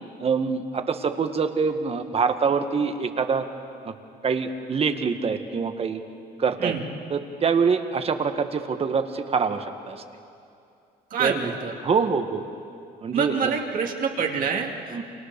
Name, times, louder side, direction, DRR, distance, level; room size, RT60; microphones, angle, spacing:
voice 1, 0.2-3.5 3.8-3.9 4.2-6.0 6.4-6.7 7.1-10.0 11.2-11.4 11.8-12.4 13.0-13.5 14.9-15.0, right 5 dB, 35° right, 8 dB, 1.8 m, -25 dB
voice 2, 11.1-11.7 13.1-15.0, right 6 dB, 55° right, 1 dB, 2.6 m, -26 dB
29.5 x 26.0 x 7.0 m, 2.5 s
cardioid pair, 110°, 17 cm